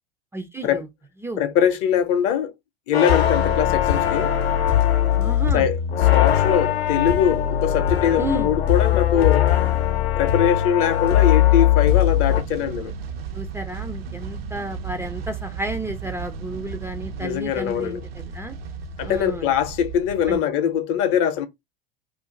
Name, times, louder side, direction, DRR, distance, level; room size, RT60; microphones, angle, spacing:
voice 1, 0.3-0.9 1.2-1.5 5.2-5.7 8.2-8.5 13.3-18.6 19.0-19.5 20.3-20.5, right 2 dB, 10° right, 0.4 m, -32 dB
voice 2, 1.4-2.5 2.9-4.3 5.5-5.8 6.1-9.5 10.2-12.9 17.2-18.0 19.0-21.5, left 9 dB, 50° left, 0.7 m, -22 dB
sound 1, 2.9-12.4, left 11 dB, 80° left, 0.7 m, -20 dB
sound 2, 11.9-20.4, right 5 dB, 75° right, 0.6 m, -35 dB
2.6 x 2.5 x 3.6 m
hypercardioid pair, 85°, 30 cm